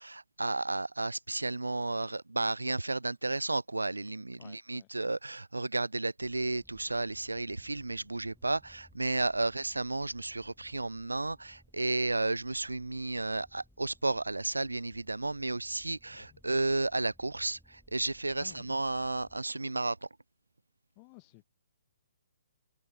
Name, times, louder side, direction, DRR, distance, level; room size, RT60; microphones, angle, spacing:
voice 1, 0.0-20.1, right 2 dB, 85° right, 1.1 m, -33 dB
voice 2, 4.4-4.9 9.4-9.6 16.2-16.4 18.4-18.8 21.0-21.4, left 40 dB or more, 30° left, 2.7 m, -55 dB
sound 1, 6.2-19.4, equal, ahead, 6.8 m, -63 dB
figure-of-eight pair, 130°, 0 cm